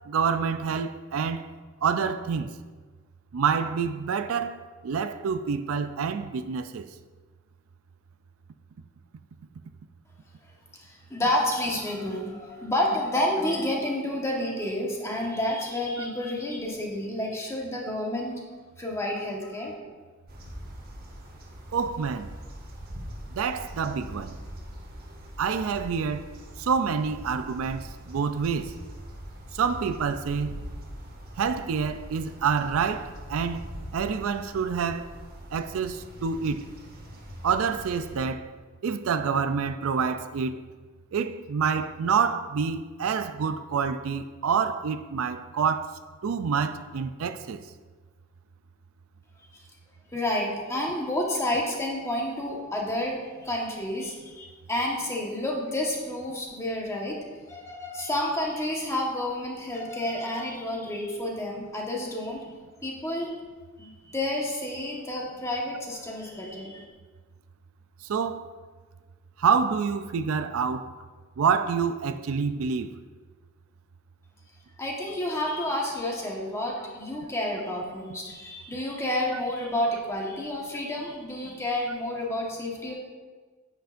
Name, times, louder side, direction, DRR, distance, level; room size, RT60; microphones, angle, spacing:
voice 1, 0.1-1.5 1.8-2.5 3.3-6.9 21.7-22.3 23.3-24.4 25.4-26.3 26.6-28.7 29.5-30.6 31.4-33.6 33.9-35.1 35.5-36.6 37.4-38.5 38.8-40.6 41.1-47.6 68.0-68.4 69.4-70.9 71.4-72.9, right 6 dB, 80° right, 0.4 m, -27 dB
voice 2, 10.8-18.3 18.8-19.8 49.5-49.6 50.1-62.4 62.8-63.3 63.8-66.8 74.8-82.9, left 1 dB, 15° left, 1.3 m, -30 dB
sound 1, 20.3-38.2, equal, 50° right, 1.3 m, -43 dB
10.0 x 8.0 x 2.5 m
head